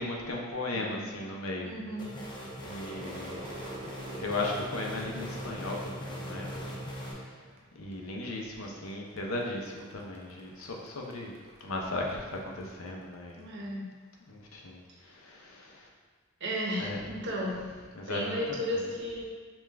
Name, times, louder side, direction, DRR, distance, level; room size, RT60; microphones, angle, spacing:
voice 1, 0.0-1.8 2.6-3.4 4.2-6.7 7.1-7.3 7.7-11.3 11.6-13.5 14.3-15.9 16.8-17.4 17.7-18.4 18.7-18.8, left 2 dB, 75° left, 0 dB, 0.7 m, -37 dB
voice 2, 1.6-2.2 13.4-13.9 16.4-17.6 18.1-19.2, equal, 60° right, -3 dB, 0.9 m, -34 dB
sound 1, 2.0-7.1, equal, 20° left, 0.6 m, -41 dB
Crowd / Fireworks, 2.5-7.9 8.2-8.9 9.2-12.7, right 1 dB, 30° right, 0.5 m, -47 dB
5.4 x 2.4 x 3.3 m, 1.5 s
head